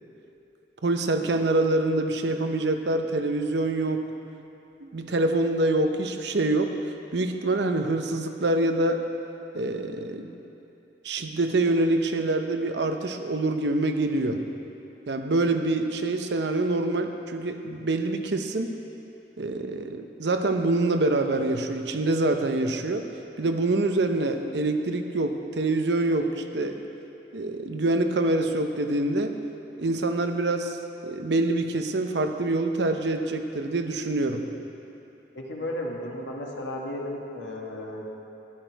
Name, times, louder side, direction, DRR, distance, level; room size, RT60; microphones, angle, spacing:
voice 1, 0.8-4.0 4.8-6.7 7.1-9.1 9.5-10.4 11.0-14.4 15.1-18.8 19.4-23.1 23.4-26.8 27.3-29.4 29.8-30.8 31.0-34.4, right 2 dB, 70° right, 6 dB, 0.7 m, -25 dB
voice 2, 35.3-38.1, left 1 dB, 85° left, -1 dB, 1.7 m, -34 dB
13.0 x 11.0 x 4.6 m, 2.9 s
head